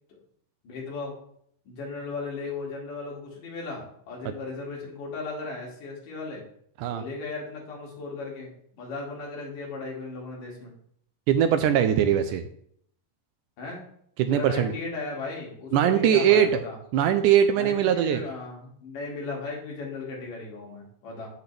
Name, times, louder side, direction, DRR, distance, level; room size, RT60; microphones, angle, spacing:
voice 1, 0.6-1.1 1.7-6.4 6.9-8.5 8.8-10.7 13.6-13.8 14.3-16.8 17.6-21.3, left 3 dB, 65° left, -2 dB, 3.9 m, -36 dB
voice 2, 11.3-12.4 14.2-14.7 15.7-16.6 16.9-18.2, right 9 dB, 85° right, 8 dB, 1.8 m, -21 dB
8.2 x 7.8 x 3.4 m, 0.66 s
omnidirectional pair, 4.2 m